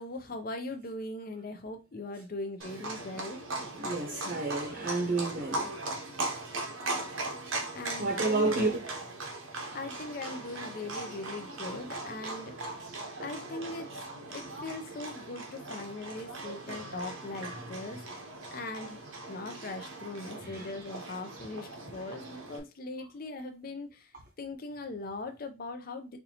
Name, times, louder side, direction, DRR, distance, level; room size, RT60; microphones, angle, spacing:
voice 1, 0.0-3.4 7.7-8.7 9.7-12.7 13.2-13.9 14.3-18.0 18.5-19.0 19.3-24.1 24.4-26.2, left 2 dB, 45° left, 0.5 m, -40 dB
Livestock farm animals working animals, 2.6-22.6, right 2 dB, 80° right, 0.9 m, -39 dB
voice 2, 3.7-5.7 8.0-8.7 20.4-20.7, right 3 dB, 50° right, 0.8 m, -30 dB
4.4 x 2.6 x 2.8 m
head